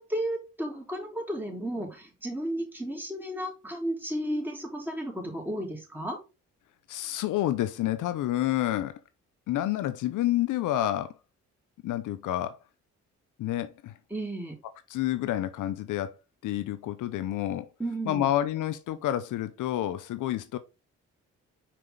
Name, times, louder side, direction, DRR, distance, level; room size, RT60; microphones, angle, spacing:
voice 1, 0.0-6.2 14.1-14.6 17.8-18.3, right 1 dB, 5° right, 3.9 m, -33 dB
voice 2, 6.9-9.0 9.5-11.1 11.8-12.6 13.4-13.9 14.9-16.1 16.4-17.7 18.1-20.6, left 13 dB, 75° left, 0.7 m, -29 dB
6.0 x 4.5 x 3.7 m
supercardioid pair, 50°, 31 cm